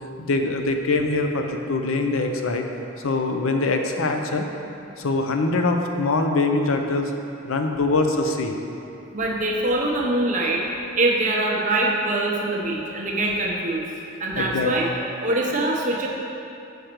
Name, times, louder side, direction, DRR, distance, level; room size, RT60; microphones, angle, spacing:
voice 1, 0.2-2.6 3.0-4.5 5.0-7.1 7.4-8.6 14.3-14.9, left 3 dB, 80° left, 4 dB, 0.5 m, -23 dB
voice 2, 9.1-10.6 10.9-13.8 14.2-14.9 15.2-16.1, right 2 dB, 35° right, -2 dB, 0.7 m, -23 dB
6.4 x 5.0 x 4.5 m, 2.8 s
head